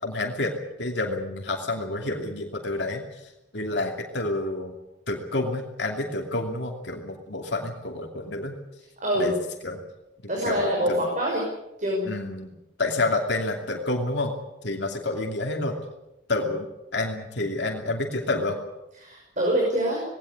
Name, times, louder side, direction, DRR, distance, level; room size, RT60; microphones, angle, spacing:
voice 1, 0.0-4.7 5.1-8.5 9.2-9.4 9.6-9.8 10.2-11.0 12.0-14.3 14.6-15.8 16.3-18.6, left 2 dB, 60° left, 2 dB, 2.7 m, -29 dB
voice 2, 9.0-9.3 10.3-11.5 11.8-12.1 19.0-20.0, equal, 40° right, -1 dB, 5.9 m, -25 dB
20.0 x 17.5 x 9.8 m, 0.94 s
head